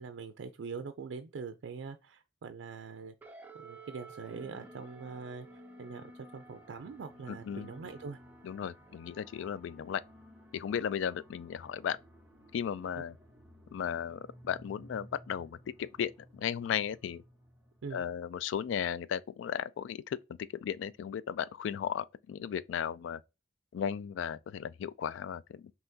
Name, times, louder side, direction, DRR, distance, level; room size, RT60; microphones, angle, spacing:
voice 1, 0.0-3.1 3.6-6.0 6.3-8.2 13.0-13.1 17.8-18.0, right 5 dB, 85° right, 0.4 m, -43 dB
sound 1, 3.2-18.0, right 1 dB, 10° right, 0.5 m, -55 dB
sound 2, 6.4-20.1, equal, 10° left, 1.1 m, -62 dB
voice 2, 7.3-7.7 8.4-10.0 10.5-12.0 12.5-13.1 13.7-17.2 17.9-23.2 23.7-25.7, left 8 dB, 90° left, 0.3 m, -35 dB
5.6 x 2.9 x 2.7 m
head